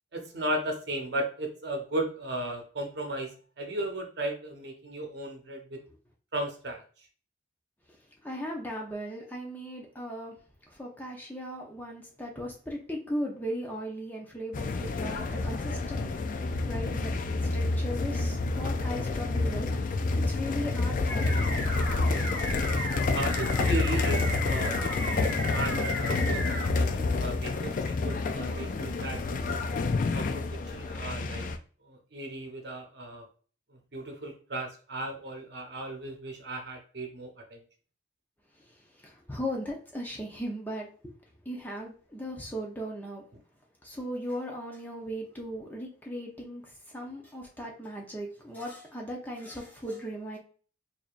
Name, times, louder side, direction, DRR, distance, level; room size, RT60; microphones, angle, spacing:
voice 1, 0.1-5.8 6.3-6.8 23.1-29.5 30.1-30.3 30.7-31.5 31.8-33.2 33.7-37.6, right 1 dB, 60° right, 0.9 m, -36 dB
voice 2, 8.2-10.4 10.7-16.4 16.7-17.2 17.5-21.5 22.0-22.2 39.0-40.9 41.5-43.2 43.8-50.4, equal, 10° left, 0.7 m, -37 dB
sound 1, 14.5-31.6, left 3 dB, 45° left, 0.3 m, -29 dB
sound 2, 21.1-26.7, left 1 dB, 65° left, 1.2 m, -35 dB
4.8 x 2.7 x 2.5 m
head